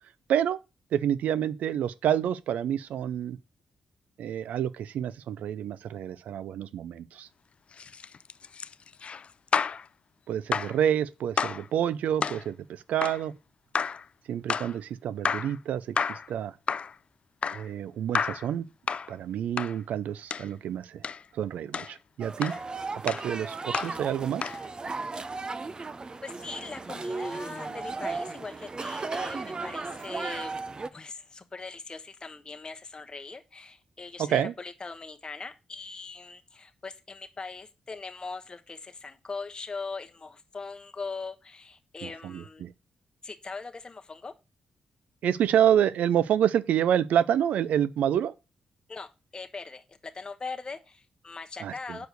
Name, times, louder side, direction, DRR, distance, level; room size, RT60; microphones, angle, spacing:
voice 1, 0.3-0.6 0.9-3.4 4.2-7.3 10.3-13.3 14.3-16.5 17.5-18.7 19.1-21.0 21.3-22.5 23.0-24.5 34.2-34.5 42.0-42.7 45.2-48.3 51.6-52.0, right 10 dB, 90° right, 0.5 m, -28 dB
sound 1, 7.7-9.9 10.5-10.8 11.4-11.7 12.2-12.5 13.0-13.2 13.8-14.1 14.5-14.8 15.3-15.6 16.0-16.3 16.7-17.0 17.4-17.7 18.2-18.5 18.9-19.1 19.6-19.8 20.3-20.5 21.0-21.2 21.7-22.0 22.4-22.6 23.1-23.3 23.7-24.0 24.4-24.6, left 6 dB, 50° left, 0.4 m, -30 dB
sound 2, 22.2-30.9, right 3 dB, 35° right, 0.7 m, -36 dB
voice 2, 26.2-30.5 30.9-42.6 43.2-44.3 48.9-49.1 49.3-52.1, left 4 dB, 35° left, 1.0 m, -40 dB
6.2 x 4.8 x 6.7 m
cardioid pair, 75°, 3 cm